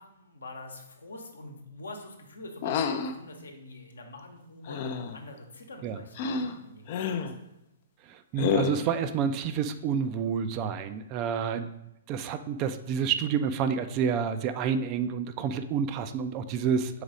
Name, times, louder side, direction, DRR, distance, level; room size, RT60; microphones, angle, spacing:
voice 1, 0.0-7.3, left 2 dB, 70° left, 4 dB, 1.0 m, -45 dB
sound 1, 2.6-3.2 4.7-5.2 6.2-6.5 6.9-7.4 8.4-8.9, left 6 dB, 40° left, 0.4 m, -29 dB
voice 2, 8.1-11.7 12.1-17.0, right 7 dB, 30° right, 9 dB, 0.4 m, -29 dB
4.9 x 4.0 x 5.0 m, 0.90 s
figure-of-eight pair, 120°, 0 cm